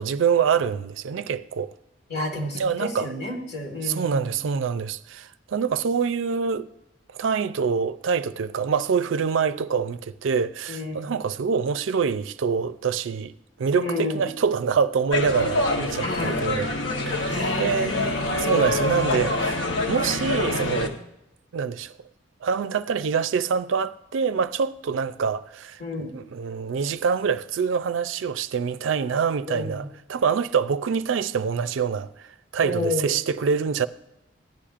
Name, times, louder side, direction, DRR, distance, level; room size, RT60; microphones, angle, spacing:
voice 1, 0.0-1.7 2.5-3.1 3.8-6.7 7.1-16.7 17.1-18.0 18.3-19.6 19.9-21.0 21.5-21.9 22.4-33.9, right 6 dB, 80° right, 0.4 m, -25 dB
voice 2, 2.1-4.3 10.7-11.1 13.8-14.2 16.0-16.4 17.3-18.5 25.8-26.1 29.5-29.7 32.6-33.0, left 2 dB, 55° left, 1.8 m, -30 dB
sound 1, 15.1-20.9, left 2 dB, 70° left, 1.0 m, -26 dB
15.0 x 10.0 x 2.5 m
head